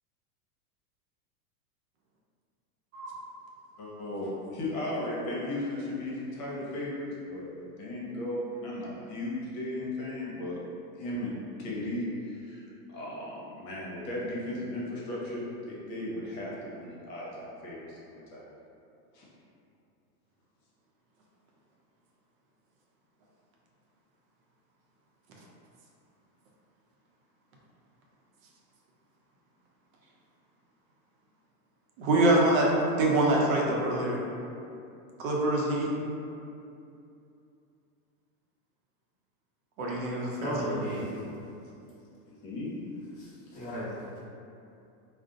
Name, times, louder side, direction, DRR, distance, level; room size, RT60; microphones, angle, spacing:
voice 1, 3.8-10.6 11.0-11.3 11.6-18.5 19.1-19.3 42.4-42.8, left 1 dB, 60° left, -5 dB, 1.0 m, -36 dB
voice 2, 32.0-32.7 33.0-34.2 35.2-35.9 39.8-40.8, right 2 dB, 55° right, -2 dB, 0.6 m, -25 dB
voice 3, 40.3-41.1 43.1-44.2, equal, 15° left, -11 dB, 1.0 m, -35 dB
2.5 x 2.1 x 3.8 m, 2.6 s
supercardioid pair, 140°, 47 cm